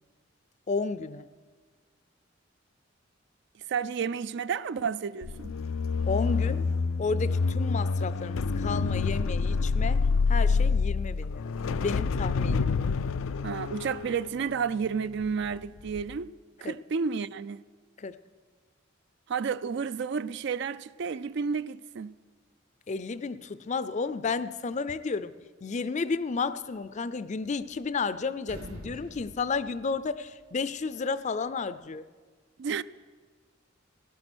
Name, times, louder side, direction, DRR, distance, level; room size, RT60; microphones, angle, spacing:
voice 1, 0.7-1.3 6.1-6.6 7.0-11.5 11.8-12.7 16.6-16.7 18.0-18.2 22.9-25.3 25.6-32.0, left 4 dB, 35° left, 0.5 m, -32 dB
voice 2, 3.7-5.5 13.4-16.3 16.6-17.6 19.3-22.1 32.6-32.8, right 6 dB, 60° right, 0.4 m, -31 dB
sound 1, 5.2-15.5 15.9-16.2, left 4 dB, 90° left, 0.4 m, -27 dB
sound 2, 27.3-28.1 28.4-30.5, equal, 90° right, 3.0 m, -46 dB
16.0 x 12.5 x 6.2 m
head